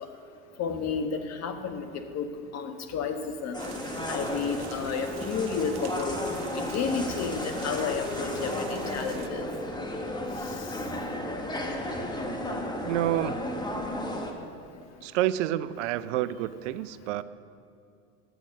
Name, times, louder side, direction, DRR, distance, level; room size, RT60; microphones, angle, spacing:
voice 1, 0.6-2.3 2.5-3.6 4.1-6.2 6.5-9.4, left 6 dB, 45° left, 7 dB, 1.4 m, -31 dB
sound 1, 3.5-14.3, left 1 dB, 10° left, 1.4 m, -33 dB
sound 2, 3.6-9.3, right 9 dB, 50° right, 1.0 m, -46 dB
voice 2, 12.8-13.4 15.0-17.2, right 13 dB, 75° right, 16 dB, 0.6 m, -28 dB
11.0 x 8.5 x 6.5 m, 2.5 s
hypercardioid pair, 95°, 37 cm